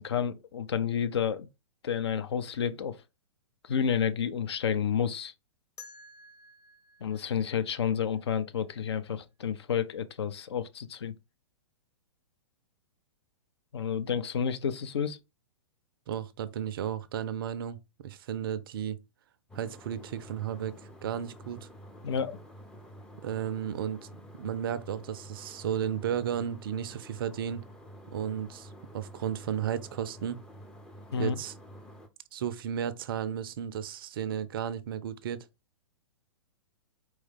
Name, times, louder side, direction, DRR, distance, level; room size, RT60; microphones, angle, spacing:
voice 1, 0.0-1.5 1.8-3.0 3.6-5.3 7.0-11.1 13.7-15.2 22.0-22.4 31.1-31.4, left 7 dB, 55° left, 0.5 m, -30 dB
sound 1, 5.8-8.6, left 3 dB, 20° left, 1.0 m, -53 dB
voice 2, 16.1-19.0 19.5-20.7 21.0-21.7 23.2-24.0 24.4-27.6 28.1-30.4 31.2-31.5 32.3-35.5, right 9 dB, 45° right, 0.5 m, -34 dB
sound 2, 19.5-32.1, equal, 5° left, 0.5 m, -49 dB
4.5 x 3.2 x 3.5 m
figure-of-eight pair, 110°, 16 cm